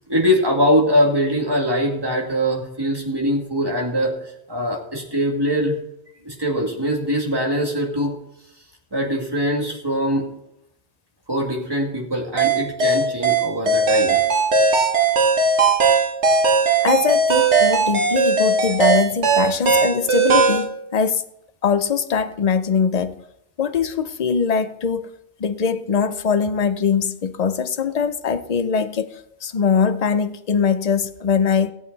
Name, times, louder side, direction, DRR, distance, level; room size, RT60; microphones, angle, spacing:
voice 1, 0.1-4.1 4.5-5.8 6.2-8.1 8.9-10.2 11.3-14.2, equal, 20° right, 2.2 m, -22 dB
sound 1, 12.4-20.7, right 4 dB, 85° right, 1.6 m, -18 dB
voice 2, 16.8-21.2 21.6-23.2 23.6-25.1 25.4-29.1 29.4-31.7, left 6 dB, 45° left, 0.6 m, -21 dB
17.0 x 8.2 x 4.0 m
omnidirectional pair, 1.2 m